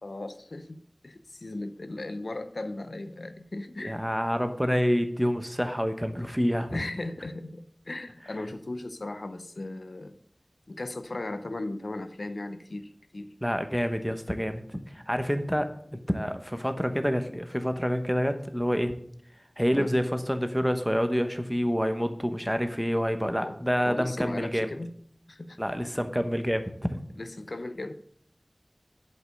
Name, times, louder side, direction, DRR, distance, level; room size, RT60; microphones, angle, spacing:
voice 1, 0.0-3.9 6.7-10.1 10.7-13.3 19.7-19.9 23.4-23.6 23.8-24.9 25.3-25.6 27.2-27.9, left 2 dB, 90° left, 10 dB, 0.6 m, -37 dB
voice 2, 3.8-6.8 13.4-18.9 19.6-24.7 25.6-27.0, equal, 5° right, 8 dB, 1.0 m, -28 dB
7.9 x 5.5 x 6.3 m, 0.63 s
wide cardioid pair, 50°, 0 cm